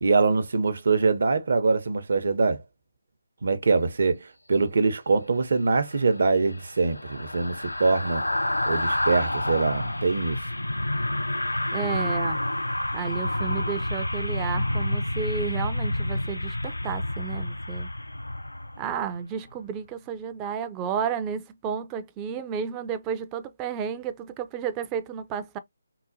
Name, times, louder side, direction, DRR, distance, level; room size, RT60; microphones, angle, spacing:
voice 1, 0.0-2.6 3.4-10.4, right 4 dB, 55° right, 0.6 m, -24 dB
sound 1, 5.8-19.2 19.5-19.7, left 1 dB, 85° left, 0.3 m, -29 dB
voice 2, 11.7-12.4 12.9-17.9 18.8-25.6, right 7 dB, 15° right, 0.4 m, -32 dB
3.9 x 2.1 x 2.5 m
figure-of-eight pair, 150°, 0 cm